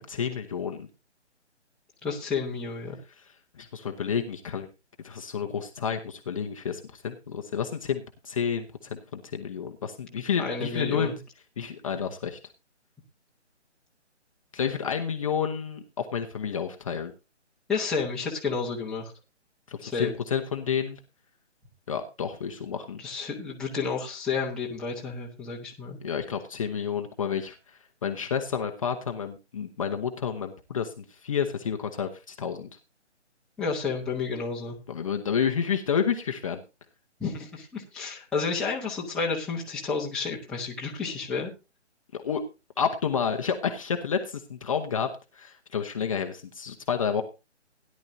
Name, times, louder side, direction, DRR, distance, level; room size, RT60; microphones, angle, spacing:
voice 1, 0.1-0.9 3.6-4.7 5.0-11.1 11.6-12.4 14.5-17.1 19.7-21.0 21.9-23.0 26.0-27.6 28.0-32.7 34.9-36.6 42.1-42.4 42.8-47.2, left 7 dB, 30° left, 4 dB, 0.8 m, -30 dB
voice 2, 2.0-2.9 10.4-11.2 17.7-19.1 19.8-20.1 23.0-26.0 33.6-34.8 37.2-41.5, left 4 dB, ahead, -5 dB, 1.0 m, -31 dB
17.0 x 10.5 x 2.7 m, 0.27 s
figure-of-eight pair, 155°, 36 cm